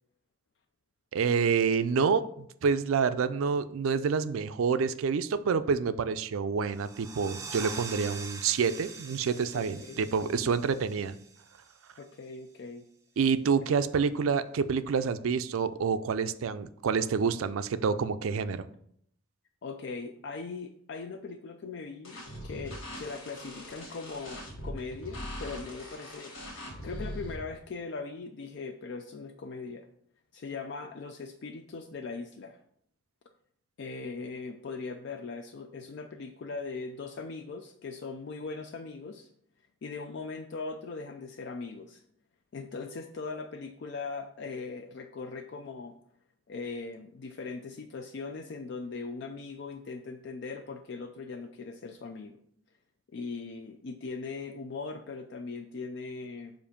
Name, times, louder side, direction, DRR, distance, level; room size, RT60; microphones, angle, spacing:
voice 1, 1.1-11.2 13.2-18.6, right 5 dB, 80° right, 12 dB, 0.4 m, -28 dB
sound 1, 6.7-12.0, right 5 dB, 15° right, 0.4 m, -44 dB
voice 2, 9.5-10.0 10.5-10.6 12.0-12.8 19.6-26.3 26.8-29.9 30.3-32.6 33.8-39.3 39.8-42.0 42.5-46.0 46.5-52.3 53.1-56.5, left 4 dB, 55° left, 6 dB, 0.4 m, -40 dB
sound 2, 22.0-27.3, equal, 75° left, 1.5 m, -41 dB
7.0 x 2.6 x 5.1 m, 0.68 s
head